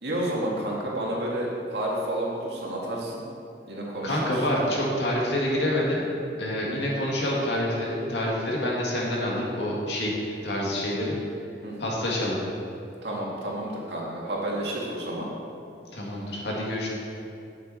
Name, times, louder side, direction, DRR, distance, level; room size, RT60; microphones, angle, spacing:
voice 1, 0.0-3.2 3.7-4.4 11.6-11.8 13.0-15.3, right 1 dB, 75° right, -3 dB, 1.9 m, -30 dB
voice 2, 4.0-6.0 6.4-10.1 10.4-11.2 11.8-12.4 15.9-16.9, left 1 dB, 75° left, -4 dB, 2.2 m, -27 dB
9.2 x 7.5 x 4.5 m, 2.5 s
head